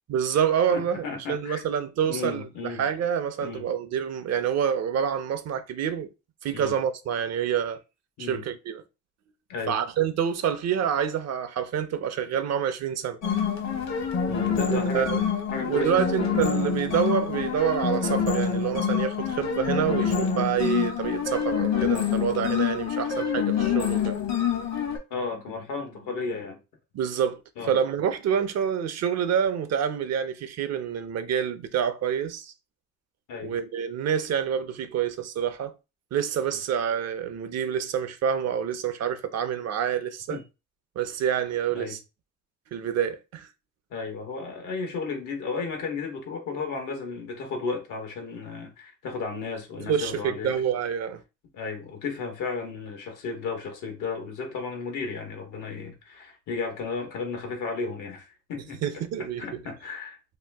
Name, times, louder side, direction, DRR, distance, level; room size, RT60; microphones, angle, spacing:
voice 1, 0.1-6.1 6.4-7.8 8.2-8.8 9.7-13.2 14.7-15.2 15.6-24.2 26.9-27.4 27.7-32.5 33.4-35.7 36.1-40.4 41.0-42.0 42.7-43.5 49.8-51.2 58.8-59.6, right 8 dB, 60° right, 0.5 m, -27 dB
voice 2, 0.7-1.6 2.0-2.8 3.4-3.7 6.5-6.8 8.2-8.4 9.5-9.8 14.3-15.2 15.5-16.0 25.1-26.6 27.6-27.8 33.3-33.5 40.3-40.4 41.7-42.0 43.9-50.5 51.5-58.8 59.4-60.2, left 4 dB, 85° left, 1.1 m, -34 dB
sound 1, 13.2-25.0, left 7 dB, 65° left, 1.0 m, -26 dB
2.9 x 2.3 x 3.4 m
cardioid pair, 90°, 30 cm